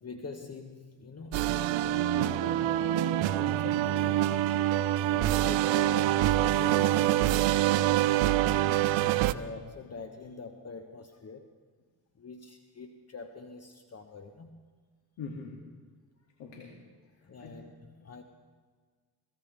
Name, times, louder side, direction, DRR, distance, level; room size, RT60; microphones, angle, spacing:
voice 1, 0.0-4.3 5.4-8.6 9.0-11.5 12.1-14.6 17.2-18.2, left 4 dB, 35° left, 6 dB, 1.2 m, -45 dB
sound 1, 1.3-9.3, right 13 dB, 75° right, 0.8 m, -25 dB
voice 2, 4.1-4.7 5.1-5.4 8.5-8.7 15.2-15.6 16.4-16.8 17.2-17.6 18.0-18.1, left 4 dB, 75° left, 0 dB, 2.6 m, -45 dB
23.5 x 17.0 x 3.4 m, 1.5 s
supercardioid pair, 70°, 45 cm